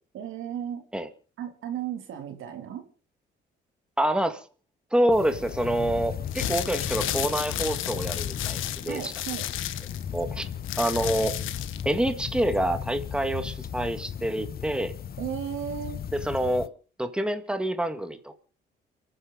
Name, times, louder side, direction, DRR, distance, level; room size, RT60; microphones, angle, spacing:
voice 1, 0.1-0.9 1.4-2.8 8.9-9.4 15.2-16.0, right 10 dB, 85° right, 5 dB, 2.9 m, -34 dB
voice 2, 4.0-4.4 4.9-9.1 10.1-10.5 10.8-11.4 11.9-14.9 16.2-16.7 17.0-18.4, right 1 dB, 5° right, 8 dB, 1.8 m, -27 dB
sound 1, 5.1-16.7, left 8 dB, 50° left, 0.9 m, -36 dB
sound 2, 6.3-11.9, left 13 dB, 85° left, 1.2 m, -33 dB
29.0 x 9.9 x 3.9 m, 0.38 s
cardioid pair, 90°, 20 cm